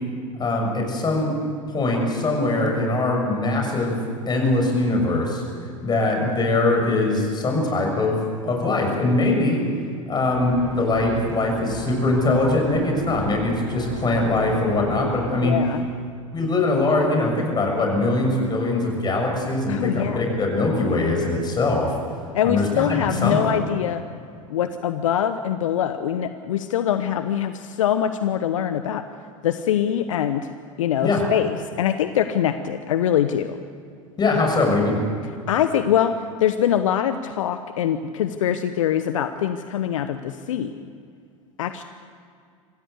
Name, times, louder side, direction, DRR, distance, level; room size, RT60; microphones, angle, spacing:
voice 1, 0.3-1.3 1.7-3.9 4.3-5.4 5.8-8.2 8.4-9.6 10.1-15.5 16.3-21.9 22.4-23.5 31.0-31.2 34.2-35.0, left 2 dB, 25° left, 1 dB, 6.7 m, -22 dB
sound 1, 10.3-15.5, right 2 dB, 50° right, 4.3 m, -35 dB
voice 2, 15.4-15.9 19.7-20.2 22.3-24.0 24.5-29.0 29.4-30.5 30.8-33.6 35.5-40.8 41.6-41.8, left 10 dB, 70° left, 10 dB, 0.9 m, -23 dB
25.5 x 15.5 x 8.2 m, 2.2 s
figure-of-eight pair, 85°, 17 cm